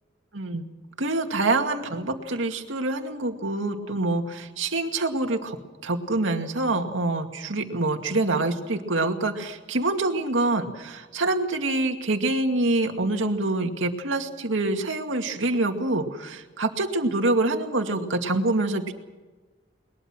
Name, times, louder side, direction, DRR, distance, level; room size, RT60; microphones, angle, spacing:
voice 1, 0.3-0.6 1.0-5.6 5.8-18.9, right 2 dB, 85° right, 5 dB, 2.3 m, -26 dB
21.5 x 21.5 x 6.2 m, 1.2 s
head